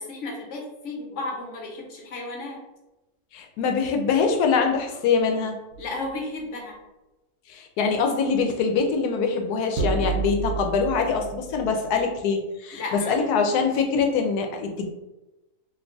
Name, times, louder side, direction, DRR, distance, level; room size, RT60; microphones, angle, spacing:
voice 1, 0.0-2.6 5.8-6.7 12.7-13.2, left 2 dB, 55° left, -2 dB, 1.1 m, -33 dB
voice 2, 3.3-5.6 7.5-14.9, left 5 dB, 85° left, 4 dB, 1.1 m, -24 dB
sound 1, 5.7-6.1 9.8-12.1, right 3 dB, 65° right, 0.9 m, -30 dB
2.8 x 2.3 x 3.8 m, 1.0 s
omnidirectional pair, 1.6 m